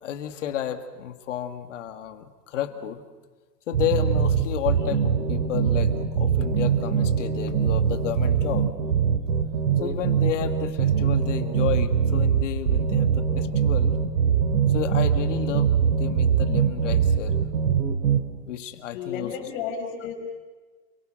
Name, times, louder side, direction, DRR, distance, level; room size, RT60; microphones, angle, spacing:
voice 1, 0.0-3.0 3.7-8.7 9.8-14.0 14.7-17.4 18.5-19.3, left 10 dB, 45° left, 8 dB, 2.0 m, -32 dB
sound 1, 3.7-18.2, right 7 dB, 75° right, 3.4 m, -22 dB
voice 2, 18.9-20.1, left 7 dB, 30° left, 1 dB, 5.2 m, -32 dB
29.0 x 22.5 x 6.4 m, 1.4 s
hypercardioid pair, 170°, 50 cm